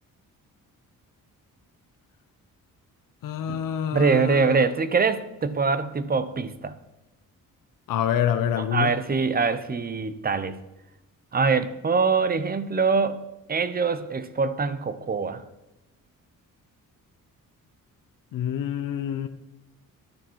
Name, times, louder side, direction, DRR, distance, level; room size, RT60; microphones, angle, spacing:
voice 1, 3.2-4.7 7.9-8.9 18.3-19.3, left 9 dB, 80° left, 7 dB, 0.9 m, -27 dB
voice 2, 3.9-6.7 8.7-10.6 11.3-13.2 13.5-15.4, right 4 dB, 30° right, 13 dB, 0.8 m, -24 dB
11.5 x 10.5 x 4.6 m, 1.0 s
cardioid pair, 125°, 32 cm